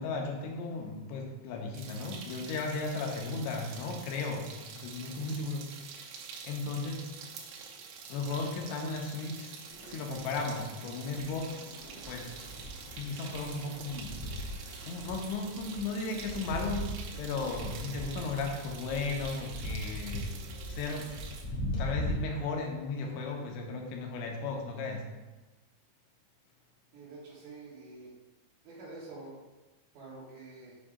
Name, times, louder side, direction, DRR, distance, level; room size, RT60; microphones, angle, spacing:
voice 1, 0.0-5.7 6.4-7.1 8.1-9.5 9.9-11.6 12.0-12.3 12.9-14.1 14.8-16.9 17.2-20.4 20.7-21.1 21.8-25.0, left 3 dB, 85° left, 1 dB, 3.0 m, -35 dB
sound 1, 1.7-21.4, right 6 dB, 85° right, 3.0 m, -47 dB
sound 2, 9.7-22.1, left 1 dB, 70° left, 1.4 m, -41 dB
voice 2, 26.9-28.1 28.6-29.4 29.9-30.8, right 3 dB, 65° right, -9 dB, 2.0 m, -47 dB
7.4 x 2.7 x 4.8 m, 1.2 s
omnidirectional pair, 5.1 m